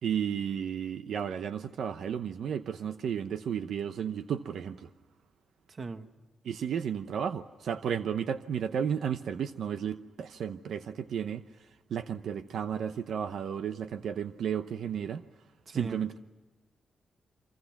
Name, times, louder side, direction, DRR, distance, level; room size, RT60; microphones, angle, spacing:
voice 1, 0.0-4.9 6.4-11.4 11.9-15.2 15.7-16.2, right 8 dB, 75° right, 11 dB, 0.8 m, -33 dB
voice 2, 5.7-6.1 15.7-16.2, right 4 dB, 40° right, 10 dB, 1.3 m, -39 dB
29.0 x 25.0 x 5.9 m, 1.3 s
cardioid pair, 115°, 0 cm